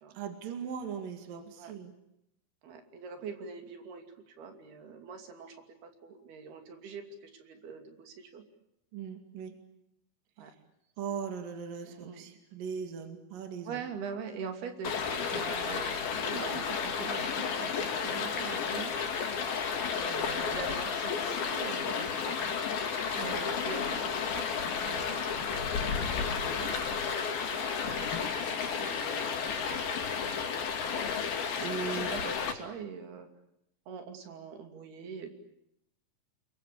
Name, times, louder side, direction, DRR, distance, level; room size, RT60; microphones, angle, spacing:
voice 1, 0.2-1.9 8.9-9.5 11.0-13.8 23.2-23.4 31.6-32.1, right 7 dB, 65° right, 6 dB, 3.9 m, -39 dB
voice 2, 2.6-8.4 10.4-10.5 11.8-12.3 13.6-19.2 20.0-22.6 23.2-25.2 25.4-27.4 27.8-28.3 28.8-29.8 30.8-31.0 31.8-33.3 33.9-35.3, right 5 dB, 85° right, 5 dB, 4.8 m, -43 dB
Stream, 14.8-32.5, left 6 dB, 75° left, 4.5 m, -32 dB
29.5 x 23.0 x 8.6 m, 0.78 s
omnidirectional pair, 4.4 m